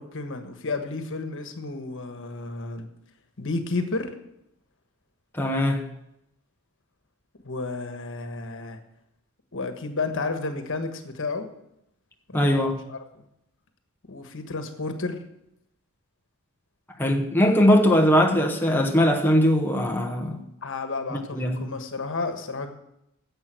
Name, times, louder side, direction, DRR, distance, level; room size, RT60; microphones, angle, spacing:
voice 1, 0.0-2.9 3.4-4.1 7.4-8.8 9.5-11.5 12.3-13.0 14.1-15.2 20.6-22.7, left 3 dB, 60° left, 1.4 m, -31 dB
voice 2, 5.3-5.9 12.3-12.9 17.0-20.4 21.1-21.6, equal, 10° left, 1.0 m, -21 dB
10.5 x 7.8 x 7.7 m
head